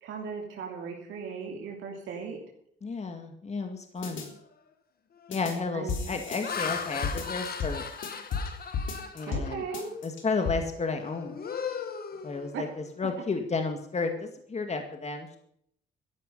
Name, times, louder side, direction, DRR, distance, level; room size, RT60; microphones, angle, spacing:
voice 1, 0.0-2.4 5.7-6.1 9.3-10.0 12.5-12.6 13.0-13.1, right 6 dB, 80° right, -1 dB, 2.9 m, -37 dB
voice 2, 2.8-4.3 5.3-7.9 9.1-9.6 10.0-11.4 12.2-12.7 13.0-15.4, left 4 dB, 35° left, 5 dB, 2.1 m, -32 dB
sound 1, 4.0-4.3 5.3-5.5 5.9-8.5 8.7-9.5 9.7-10.5, left 5 dB, 75° left, 3.5 m, -34 dB
Laughter, 4.3-4.6 5.2-5.5 6.1-9.9 10.3-10.6 11.0-12.9, left 6 dB, 50° left, 2.0 m, -38 dB
14.5 x 11.0 x 5.5 m, 0.69 s
cardioid pair, 90°, 20 cm